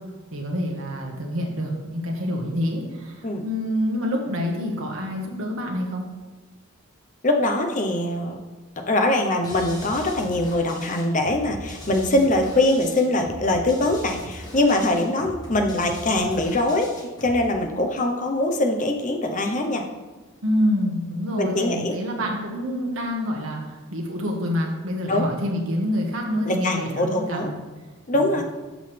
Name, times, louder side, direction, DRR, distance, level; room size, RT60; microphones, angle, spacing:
voice 1, 0.3-6.0 20.4-27.6 28.1-28.4, equal, 70° right, 0 dB, 1.6 m, -27 dB
voice 2, 7.2-8.4 8.9-16.9 17.2-19.8 21.4-21.9 25.1-25.3 26.5-27.5 28.1-28.4, left 1 dB, 35° left, 3 dB, 0.9 m, -22 dB
sound 1, 9.4-17.4, left 1 dB, 15° left, 1.6 m, -39 dB
12.0 x 6.3 x 3.4 m, 1.2 s
head